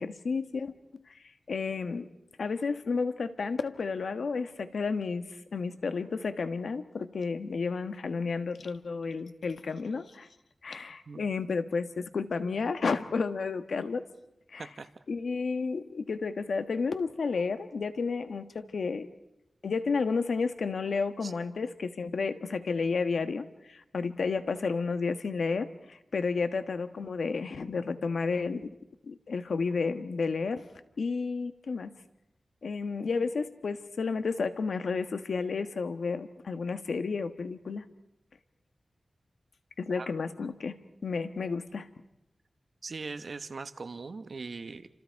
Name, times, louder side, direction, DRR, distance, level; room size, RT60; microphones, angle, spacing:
voice 1, 0.0-2.1 2.4-10.3 10.6-14.0 14.5-14.7 15.1-19.1 19.6-28.7 29.0-30.7 31.0-32.0 32.6-37.8 39.8-41.9, left 4 dB, 80° left, 9 dB, 1.3 m, -32 dB
voice 2, 14.6-14.9 21.2-21.3 40.0-40.1 42.8-44.9, right 4 dB, 60° right, 10 dB, 1.2 m, -40 dB
29.0 x 26.5 x 4.7 m, 0.89 s
wide cardioid pair, 90°, 0 cm